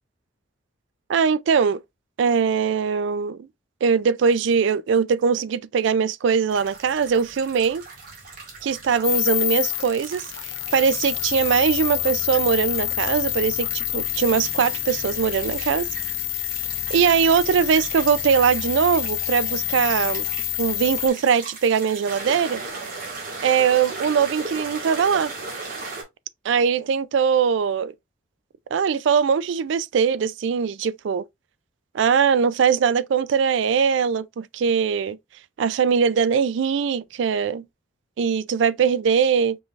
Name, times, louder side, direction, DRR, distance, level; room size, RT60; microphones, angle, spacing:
voice 1, 1.1-1.8 2.2-3.4 3.8-7.8 8.6-15.9 16.9-20.2 20.6-22.6 23.4-25.3 26.4-27.9 28.7-31.2 31.9-35.2 35.6-37.6 38.2-39.6, right 6 dB, 70° right, 0.3 m, -21 dB
sound 1, 6.5-26.0, right 3 dB, 45° right, 1.8 m, -38 dB
sound 2, 9.0-21.1, left 17 dB, 70° left, 0.7 m, -27 dB
5.3 x 3.2 x 2.4 m
head